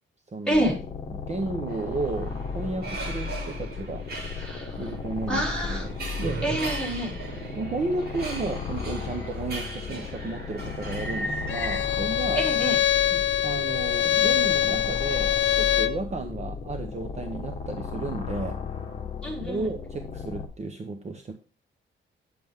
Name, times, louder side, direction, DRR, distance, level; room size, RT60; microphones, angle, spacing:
voice 1, 0.3-0.6 1.3-4.1 4.8-5.9 6.2-6.4 7.5-12.5 13.1-18.6 19.4-21.3, right 3 dB, 30° right, 5 dB, 0.9 m, -33 dB
sound 1, 0.5-20.5, left 5 dB, 30° left, 1.5 m, -35 dB
sound 2, 1.7-11.8, right 2 dB, 50° right, 3.2 m, -37 dB
voice 2, 4.4-4.9 5.3-5.9 6.4-7.1 12.4-12.8 19.2-19.7, right 1 dB, 5° left, -4 dB, 4.4 m, -27 dB
Bowed string instrument, 11.5-16.0, left 11 dB, 60° left, 0.7 m, -24 dB
9.5 x 7.7 x 3.5 m, 0.36 s
wide cardioid pair, 160°, 21 cm